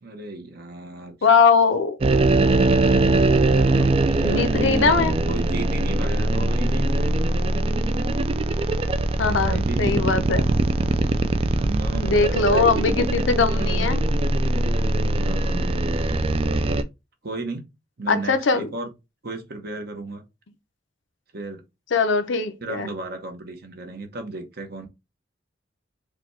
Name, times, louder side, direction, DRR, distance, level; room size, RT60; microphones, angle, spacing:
voice 1, 0.0-1.2 3.6-4.9 5.3-7.5 9.2-10.4 11.6-13.0 13.6-13.7 15.2-15.8 17.2-17.6 18.0-18.9 19.2-20.2 21.3-21.6 22.6-24.9, right 2 dB, 55° right, 0.9 m, -34 dB
voice 2, 1.2-2.0 3.3-3.4 4.2-5.1 9.2-10.5 11.9-14.0 18.1-18.7 21.9-22.9, left 4 dB, 80° left, 0.6 m, -21 dB
sound 1, 2.0-16.8, right 2 dB, 30° right, 0.3 m, -21 dB
4.9 x 2.3 x 3.1 m
head